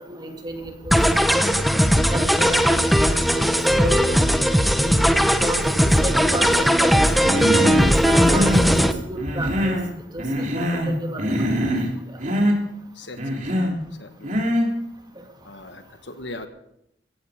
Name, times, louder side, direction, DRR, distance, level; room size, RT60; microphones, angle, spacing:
voice 1, 0.0-1.4 2.1-3.4 3.7-4.1 4.8-7.0 7.7-9.8 10.1-11.5 12.1-12.2 15.2-15.3, right 1 dB, 25° right, 3 dB, 2.6 m, -31 dB
sound 1, 0.9-8.9, equal, ahead, 0.9 m, -18 dB
Human voice, 7.2-7.9 8.2-8.7 9.2-9.9 10.2-10.9 11.2-11.9 12.2-12.6 13.2-13.8 14.2-14.7, equal, 45° right, 3.3 m, -23 dB
voice 2, 12.9-13.5 14.0-14.4 15.4-16.5, left 2 dB, 70° left, 8 dB, 1.5 m, -39 dB
16.5 x 15.0 x 5.1 m, 0.79 s
head